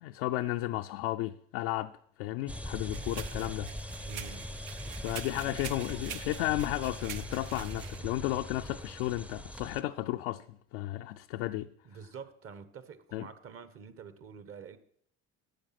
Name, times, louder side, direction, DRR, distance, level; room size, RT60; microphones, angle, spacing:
voice 1, 0.0-1.9 2.2-3.7 5.0-11.7 13.1-13.3, left 16 dB, 80° left, 0.5 m, -33 dB
sound 1, 2.5-9.8, equal, 5° right, 0.6 m, -41 dB
sound 2, 2.9-8.0, right 10 dB, 75° right, 0.9 m, -46 dB
voice 2, 4.0-4.6 11.8-14.8, right 6 dB, 45° right, 1.4 m, -47 dB
11.5 x 7.5 x 6.0 m
supercardioid pair, 80°, 31 cm